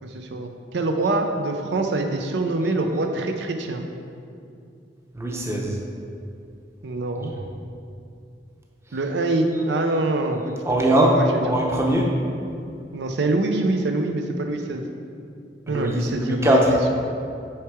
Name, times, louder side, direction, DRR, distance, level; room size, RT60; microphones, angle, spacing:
voice 1, 0.0-3.9 6.8-7.3 8.9-11.5 12.9-14.9 15.7-16.9, right 2 dB, 70° right, 4 dB, 0.5 m, -25 dB
voice 2, 5.1-5.8 7.2-7.3 10.6-11.2 11.4-12.1 15.7-16.7, right 1 dB, 15° right, -1 dB, 0.7 m, -21 dB
6.5 x 4.6 x 4.7 m, 2.5 s
head